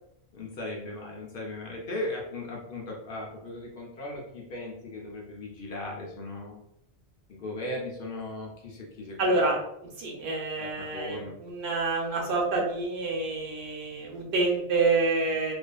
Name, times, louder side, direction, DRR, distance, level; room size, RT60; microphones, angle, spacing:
voice 1, 0.3-6.6 7.3-9.4 10.6-11.4, left 2 dB, 65° left, -1 dB, 0.7 m, -37 dB
voice 2, 9.2-9.6 10.0-15.5, right 3 dB, 85° right, 0 dB, 1.0 m, -27 dB
2.4 x 2.4 x 2.3 m, 0.77 s
omnidirectional pair, 1.1 m